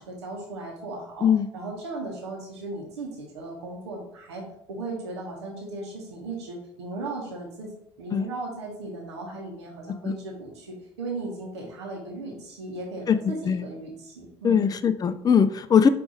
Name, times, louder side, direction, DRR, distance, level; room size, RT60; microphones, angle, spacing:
voice 1, 0.0-1.3 1.5-7.7 8.0-14.7, right 2 dB, 85° right, -2 dB, 0.9 m, -36 dB
voice 2, 14.4-15.9, left 7 dB, 25° left, 11 dB, 0.4 m, -20 dB
4.7 x 2.5 x 3.8 m, 0.72 s
hypercardioid pair, 60°, 14 cm